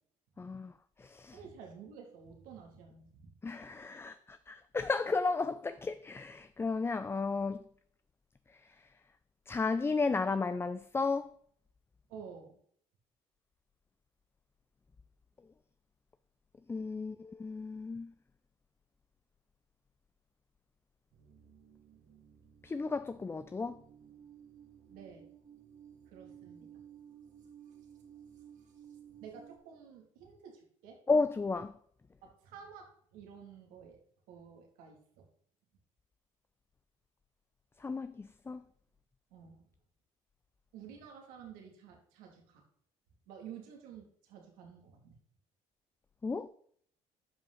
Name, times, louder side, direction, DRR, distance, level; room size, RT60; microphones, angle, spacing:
voice 1, 0.4-0.7 1.0-1.4 3.4-7.6 9.5-11.3 16.7-18.1 22.6-23.8 31.1-31.7 37.8-38.6 46.2-46.5, left 4 dB, 15° left, 0.4 m, -33 dB
voice 2, 1.3-3.4 12.1-12.6 24.9-25.3 26.1-26.8 29.2-31.0 32.2-34.0 34.3-35.3 39.3-39.6 40.7-42.6 43.3-45.1, right 7 dB, 90° right, 2.5 m, -51 dB
sound 1, 21.1-29.6, right 9 dB, 60° right, 2.0 m, -56 dB
11.5 x 5.5 x 3.9 m
cardioid pair, 95°, 14 cm